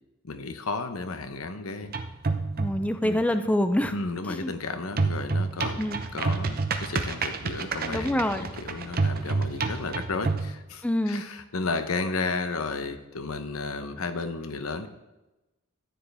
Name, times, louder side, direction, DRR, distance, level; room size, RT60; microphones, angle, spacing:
voice 1, 0.2-1.9 3.0-3.2 3.9-8.2 8.6-14.9, left 3 dB, 85° left, 9 dB, 0.9 m, -33 dB
sound 1, 1.8-3.0 5.0-10.5, right 3 dB, 45° right, 0.8 m, -28 dB
voice 2, 2.6-3.9 4.3-4.5 5.8-6.0 7.9-8.5 10.8-11.2, left 1 dB, 5° left, 8 dB, 0.5 m, -26 dB
13.5 x 9.4 x 3.5 m, 1.0 s
head